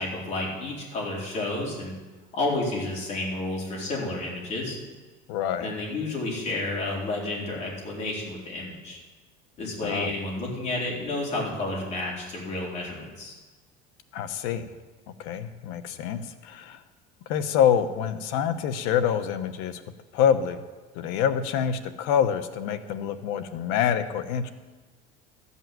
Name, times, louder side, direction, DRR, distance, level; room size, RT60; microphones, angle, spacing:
voice 1, 0.0-1.9 2.3-4.8 5.6-9.0 9.6-13.3, left 2 dB, 35° left, -3 dB, 4.1 m, -31 dB
voice 2, 5.3-5.7 9.8-10.1 14.1-14.7 15.2-16.8 17.3-19.8 20.1-20.6 20.9-24.5, left 8 dB, 75° left, 10 dB, 1.0 m, -26 dB
14.0 x 5.6 x 9.2 m, 1.3 s
cardioid pair, 150°, 19 cm